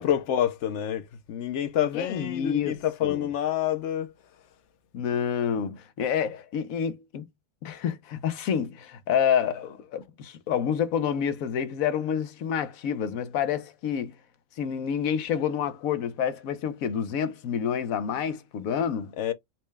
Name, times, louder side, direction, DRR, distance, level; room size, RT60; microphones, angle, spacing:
voice 1, 0.0-4.1 19.2-19.3, left 10 dB, 65° left, 0.8 m, -27 dB
voice 2, 1.9-3.3 4.9-7.3 7.6-14.1 14.6-19.1, left 8 dB, 85° left, 1.1 m, -28 dB
4.3 x 2.2 x 3.2 m
omnidirectional pair, 1.4 m